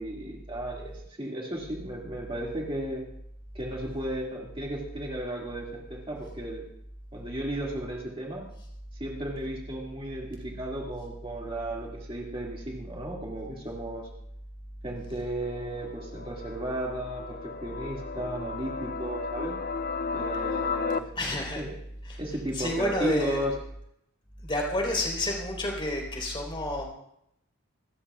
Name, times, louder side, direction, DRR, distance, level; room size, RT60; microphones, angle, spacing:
voice 1, 0.0-3.1 3.5-6.6 7.1-8.5 9.0-14.1 14.8-19.6 20.1-21.7 22.2-23.5, right 1 dB, 25° right, -2 dB, 2.3 m, -34 dB
sound 1, 15.4-21.0, left 5 dB, 40° left, 0.5 m, -34 dB
voice 2, 21.2-21.6 22.1-22.2 22.5-23.4 24.4-26.8, left 1 dB, 25° left, -1 dB, 4.3 m, -29 dB
27.0 x 14.0 x 2.5 m, 0.74 s
head